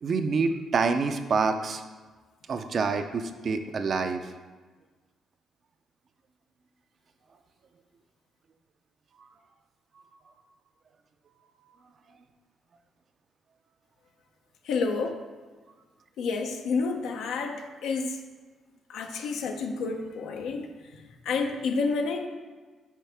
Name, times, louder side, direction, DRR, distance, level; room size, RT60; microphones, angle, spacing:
voice 1, 0.0-1.8 2.5-4.3 9.2-9.3, right 4 dB, 50° right, 8 dB, 0.5 m, -27 dB
voice 2, 14.6-15.2 16.2-18.2 18.9-20.8 21.2-22.3, left 4 dB, 85° left, 3 dB, 0.6 m, -29 dB
7.4 x 4.7 x 3.4 m, 1.4 s
cardioid pair, 90°, 0 cm